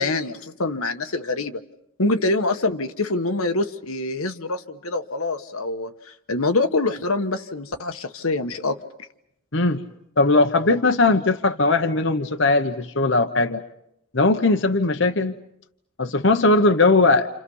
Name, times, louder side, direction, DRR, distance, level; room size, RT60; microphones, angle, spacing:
voice 1, 0.0-1.6 2.0-8.8, left 2 dB, 85° left, 6 dB, 1.5 m, -25 dB
voice 2, 10.2-13.6 14.1-15.3 16.0-17.3, left 3 dB, 55° left, 6 dB, 1.1 m, -19 dB
29.5 x 29.0 x 5.6 m, 0.79 s
head